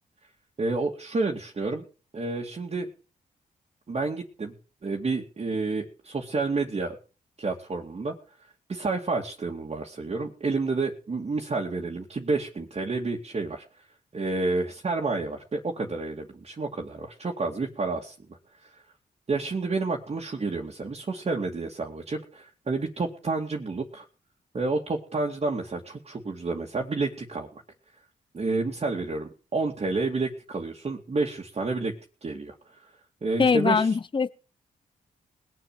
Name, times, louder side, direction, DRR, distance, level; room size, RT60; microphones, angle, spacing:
voice 1, 0.6-1.8 2.1-2.9 3.9-4.5 4.8-7.0 7.4-8.1 8.7-13.6 14.1-18.1 18.6-18.8 19.3-24.0 24.5-27.6 28.3-31.9 32.2-32.9 33.2-34.0, right 3 dB, 45° right, 2.4 m, -30 dB
voice 2, 33.4-34.3, left 5 dB, 35° left, 0.8 m, -22 dB
20.0 x 7.6 x 7.5 m
cardioid pair, 80°, 16 cm